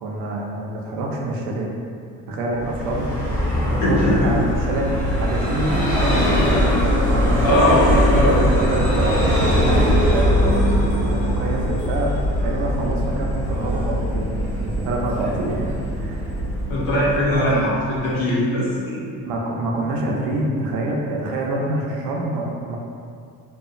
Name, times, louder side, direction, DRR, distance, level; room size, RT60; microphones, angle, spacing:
voice 1, 0.0-1.7 2.3-7.6 8.4-12.1 12.4-14.3 14.6-16.3 17.3-17.7 19.2-22.8, right 2 dB, 75° right, -1 dB, 0.6 m, -26 dB
Vehicle, 2.6-18.0, equal, 35° left, 1.2 m, -21 dB
voice 2, 3.8-4.2 7.4-7.8 8.1-8.4 16.7-19.0, equal, 75° left, -7 dB, 1.0 m, -20 dB
2.8 x 2.3 x 2.5 m, 2.3 s
cardioid pair, 135°, 35 cm